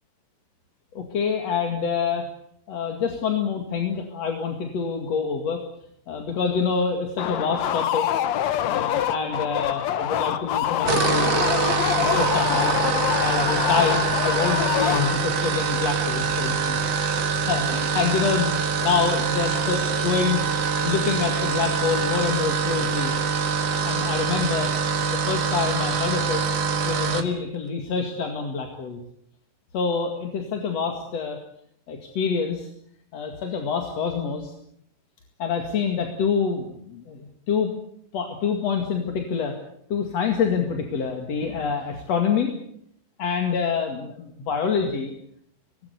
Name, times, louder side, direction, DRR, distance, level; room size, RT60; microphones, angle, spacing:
voice 1, 0.9-2.3 2.7-5.6 6.1-8.1 8.6-11.3 11.6-12.7 13.2-16.8 17.5-20.4 20.8-23.1 23.8-24.7 25.1-26.4 26.8-29.0 29.7-31.4 31.9-32.7 33.1-34.5 35.4-37.7 38.1-39.5 39.9-42.5 43.2-45.1, left 6 dB, 50° left, 4 dB, 2.9 m, -26 dB
sound 1, 7.2-15.5, left 11 dB, 70° left, 1.8 m, -25 dB
sound 2, 10.7-27.3, right 5 dB, 50° right, 2.2 m, -24 dB
24.0 x 20.0 x 8.3 m, 0.72 s
omnidirectional pair, 4.3 m